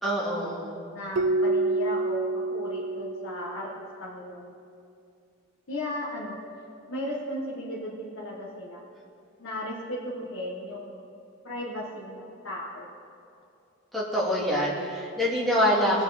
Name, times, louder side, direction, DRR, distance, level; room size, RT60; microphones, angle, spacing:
voice 1, 0.0-0.8 13.9-16.0, equal, ahead, -6 dB, 2.3 m, -25 dB
voice 2, 0.9-3.7 4.0-4.5 5.7-6.4 6.9-8.8 9.4-11.1 11.4-12.9, left 1 dB, 80° left, -4 dB, 1.5 m, -36 dB
Keyboard (musical), 1.2-4.0, right 2 dB, 65° right, 0.4 m, -28 dB
20.0 x 7.3 x 4.2 m, 2.6 s
head